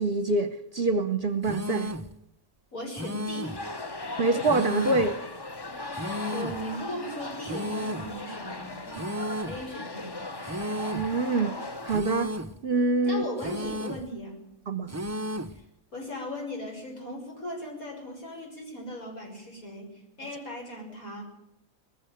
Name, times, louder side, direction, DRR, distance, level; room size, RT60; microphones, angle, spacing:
voice 1, 0.0-1.9 4.2-5.2 10.9-11.6 11.8-12.3 12.6-13.3 14.7-14.9, right 3 dB, 50° right, 1.0 m, -25 dB
sound 1, 1.4-2.1 2.9-3.7 4.4-5.2 5.9-6.6 7.4-8.1 8.9-9.6 10.4-11.1 11.9-12.6 13.4-14.1 14.9-15.6, equal, 20° right, 0.4 m, -34 dB
voice 2, 2.7-3.6 6.1-10.3 13.0-14.4 15.5-15.6 15.9-21.2, left 1 dB, 80° left, 6.8 m, -38 dB
sound 2, 3.4-12.0, left 2 dB, 20° left, 0.8 m, -38 dB
20.0 x 16.0 x 9.2 m
omnidirectional pair, 1.5 m